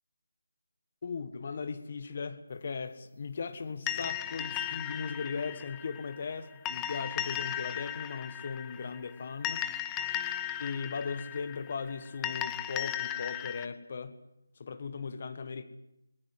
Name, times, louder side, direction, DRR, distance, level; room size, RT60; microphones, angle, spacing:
voice 1, 1.0-9.6 10.6-14.2 14.6-15.6, left 5 dB, 45° left, 11 dB, 1.4 m, -38 dB
sound 1, 3.9-13.7, left 11 dB, 10° left, 0.8 m, -36 dB
19.5 x 19.5 x 9.3 m, 0.88 s
figure-of-eight pair, 160°, 0 cm